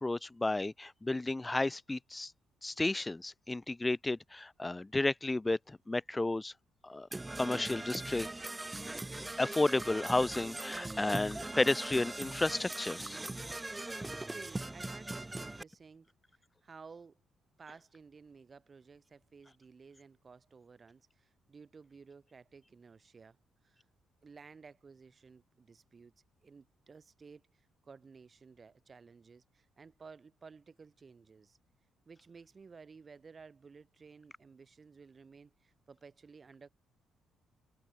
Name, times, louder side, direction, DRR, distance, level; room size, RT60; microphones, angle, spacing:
voice 1, 0.0-2.3 2.6-5.6 5.9-6.5 6.8-7.1 7.4-8.3 9.4-13.2, left 2 dB, 15° left, 0.4 m, -32 dB
Percussion / Brass instrument, 7.1-15.6, right 2 dB, 15° right, 2.1 m, -40 dB
voice 2, 13.8-16.1 16.6-17.2 17.6-23.4 23.6-23.8 24.2-26.1 26.4-31.6 32.1-36.7, right 5 dB, 35° right, 4.6 m, -55 dB
cardioid pair, 90°, 0 cm